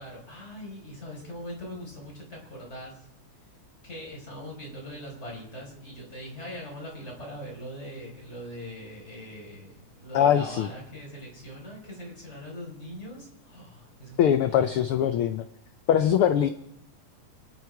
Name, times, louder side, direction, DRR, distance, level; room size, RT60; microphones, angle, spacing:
voice 1, 0.0-3.1 3.8-14.7, equal, 20° left, -2 dB, 5.0 m, -41 dB
voice 2, 10.1-10.7 14.2-15.4 15.9-16.5, left 9 dB, 90° left, 9 dB, 1.2 m, -22 dB
27.5 x 10.0 x 4.7 m, 0.75 s
omnidirectional pair, 3.3 m